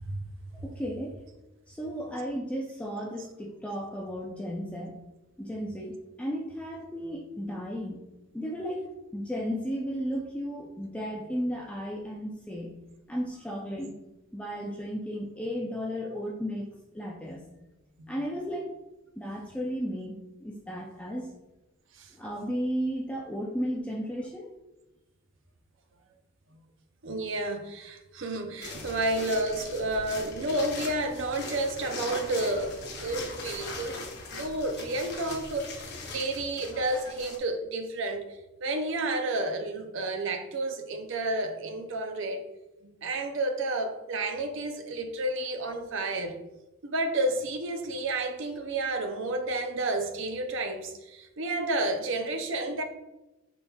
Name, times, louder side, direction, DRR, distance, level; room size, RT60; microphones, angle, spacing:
voice 1, 0.6-1.2 1.7-5.0 5.4-8.0 8.3-8.9 9.1-12.7 13.1-13.9 14.3-16.6 16.9-17.4 18.1-18.7 19.2-20.1 20.4-21.3 22.2-24.5, equal, 5° left, -2 dB, 0.4 m, -34 dB
voice 2, 27.0-34.0 34.3-35.8 36.1-38.2 38.6-42.4 42.8-46.3 46.8-52.8, right 2 dB, 60° right, 5 dB, 0.5 m, -31 dB
sound 1, 28.6-37.4, left 3 dB, 50° left, 0.8 m, -40 dB
5.5 x 4.2 x 2.3 m, 1.0 s
head